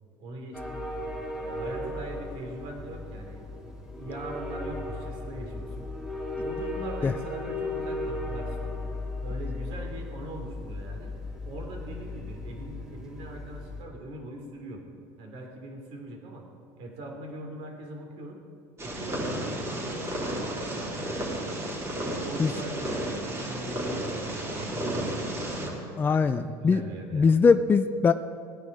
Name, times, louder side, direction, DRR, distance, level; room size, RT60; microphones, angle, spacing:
voice 1, 0.2-0.8 1.4-3.4 3.9-5.9 6.4-8.8 9.2-11.1 11.4-14.8 15.2-16.5 16.8-18.4 18.8-21.3 21.9-25.7 26.1-27.3, right 1 dB, 65° right, 2 dB, 3.3 m, -41 dB
sound 1, 0.5-13.8, left 2 dB, 5° right, 2.9 m, -36 dB
Purr, 18.8-25.7, right 1 dB, 25° right, 3.7 m, -32 dB
voice 2, 26.0-26.8 27.1-28.1, left 5 dB, 20° left, 9 dB, 0.4 m, -21 dB
18.0 x 9.8 x 4.9 m, 2.4 s
cardioid pair, 120°, 10 cm